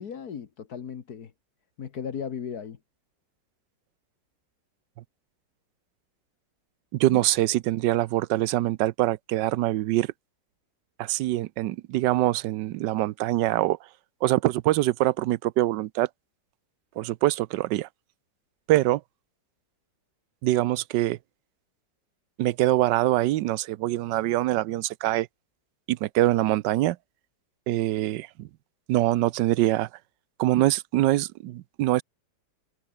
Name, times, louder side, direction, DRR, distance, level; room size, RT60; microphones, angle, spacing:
voice 1, 0.0-1.3 1.8-2.8 7.1-7.2, left 7 dB, 60° left, 1.8 m, -36 dB
voice 2, 6.9-10.1 11.0-13.8 14.2-16.1 17.0-17.9 18.7-19.0 20.4-21.2 22.4-25.3 25.9-27.0 27.7-28.5 28.9-29.9 30.4-32.0, right 16 dB, 75° right, 1.3 m, -24 dB
omnidirectional pair, 2.0 m